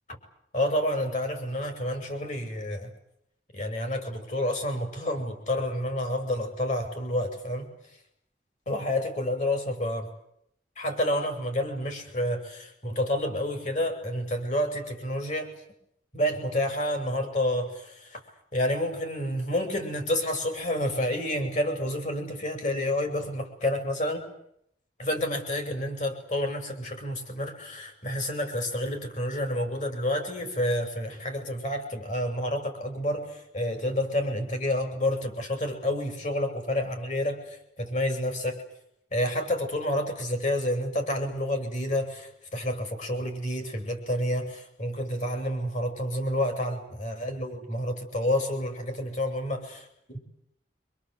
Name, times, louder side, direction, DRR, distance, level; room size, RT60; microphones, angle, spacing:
voice 1, 0.5-2.9 3.5-7.7 8.7-10.1 10.8-15.6 16.1-18.2 18.5-24.2 25.0-38.6 39.1-50.2, left 1 dB, 45° left, 6 dB, 6.3 m, -29 dB
26.0 x 26.0 x 8.1 m, 0.73 s
head